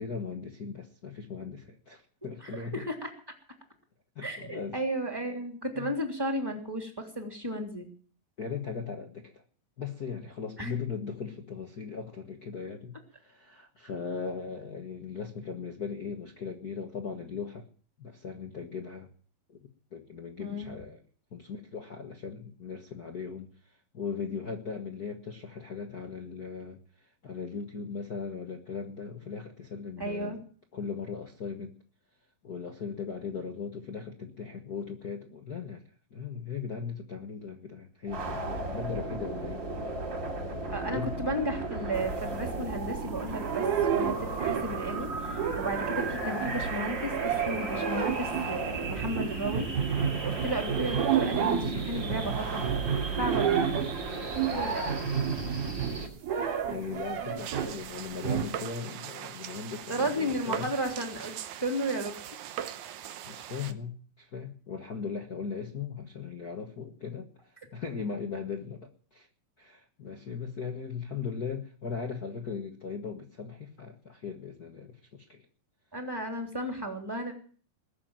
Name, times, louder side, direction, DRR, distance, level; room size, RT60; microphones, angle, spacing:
voice 1, 0.0-2.8 4.1-4.8 5.8-5.9 8.4-9.4 9.8-17.7 18.0-19.1 19.5-19.6 19.9-21.0 21.3-30.4 30.7-31.7 32.4-35.8 36.1-39.6 40.9-41.1 56.7-60.7 63.2-69.3 69.6-75.4, left 5 dB, 75° left, 3 dB, 0.8 m, -38 dB
voice 2, 2.4-3.1 4.2-7.9 10.6-10.7 20.4-20.7 30.0-30.4 40.7-49.7 50.2-52.6 53.2-53.5 54.4-54.8 59.9-62.1 75.9-77.3, right 1 dB, 5° right, 3 dB, 2.6 m, -34 dB
sound 1, 38.1-56.1, right 3 dB, 35° right, 3.4 m, -35 dB
Quitschen Hand Glas, 41.9-43.0 43.4-44.9 45.1-57.8 58.2-58.4, right 8 dB, 85° right, 4.1 m, -31 dB
sound 2, 57.4-63.7, right 10 dB, 65° right, 2.0 m, -41 dB
21.0 x 7.0 x 9.0 m, 0.43 s
omnidirectional pair, 4.1 m